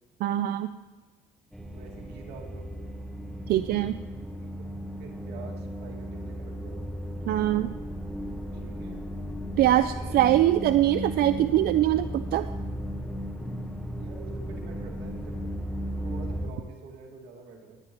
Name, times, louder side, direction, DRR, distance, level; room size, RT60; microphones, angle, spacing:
voice 1, 0.2-0.7 3.5-4.0 7.3-7.7 9.6-12.5, right 13 dB, 65° right, 11 dB, 0.4 m, -23 dB
sound 1, 1.5-16.5, equal, ahead, 1.3 m, -35 dB
voice 2, 1.7-2.7 4.4-6.8 8.5-9.0 9.6-10.3 13.8-15.5 16.0-17.8, right 4 dB, 85° right, 0 dB, 2.3 m, -46 dB
19.5 x 9.9 x 3.0 m, 1.3 s
cardioid pair, 110°, 17 cm